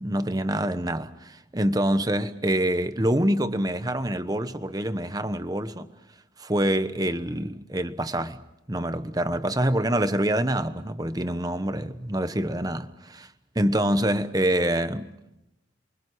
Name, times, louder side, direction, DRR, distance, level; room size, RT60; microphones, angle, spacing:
voice 1, 0.0-1.1 1.5-5.8 6.5-8.3 8.7-12.8 13.6-15.1, right 1 dB, 20° right, 1.1 m, -25 dB
29.5 x 24.0 x 6.2 m
head